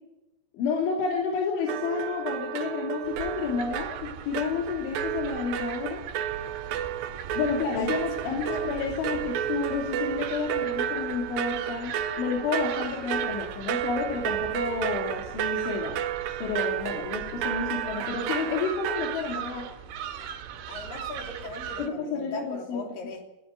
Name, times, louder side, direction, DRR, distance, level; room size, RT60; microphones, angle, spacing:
voice 1, 0.5-6.0 7.3-16.0 16.4-19.7 21.8-22.8, left 5 dB, 70° left, 0 dB, 5.1 m, -30 dB
sound 1, 1.7-19.2, right 10 dB, 90° right, 2.0 m, -32 dB
sound 2, 3.1-21.9, right 8 dB, 70° right, 4.0 m, -40 dB
voice 2, 7.8-8.1 8.4-8.7 20.7-23.2, left 3 dB, 50° left, 3 dB, 4.6 m, -38 dB
19.0 x 14.5 x 9.5 m, 0.99 s
omnidirectional pair, 5.7 m